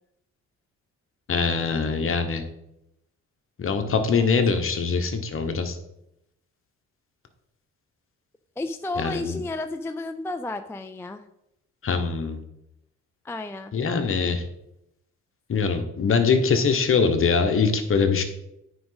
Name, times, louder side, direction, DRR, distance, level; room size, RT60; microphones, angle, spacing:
voice 1, 1.3-2.4 3.6-5.8 9.0-9.4 11.8-12.4 13.7-14.4 15.5-18.2, left 5 dB, 45° left, 6 dB, 1.2 m, -23 dB
voice 2, 8.6-11.2 13.2-13.8, left 2 dB, 10° left, 7 dB, 0.4 m, -32 dB
9.3 x 5.1 x 4.0 m, 0.83 s
cardioid pair, 90°, 30 cm